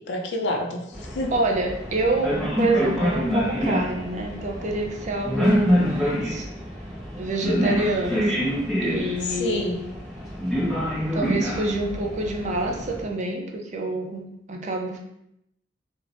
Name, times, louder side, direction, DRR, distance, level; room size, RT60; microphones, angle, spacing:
voice 1, 0.1-1.4 5.3-5.9 9.2-9.8, left 1 dB, 65° left, 2 dB, 0.4 m, -28 dB
sound 1, 0.9-13.0, equal, ahead, 0.7 m, -26 dB
voice 2, 1.3-6.5 7.2-8.6 8.8-9.8 11.1-15.0, right 2 dB, 40° right, 2 dB, 0.4 m, -27 dB
3.1 x 2.0 x 2.5 m, 0.80 s
head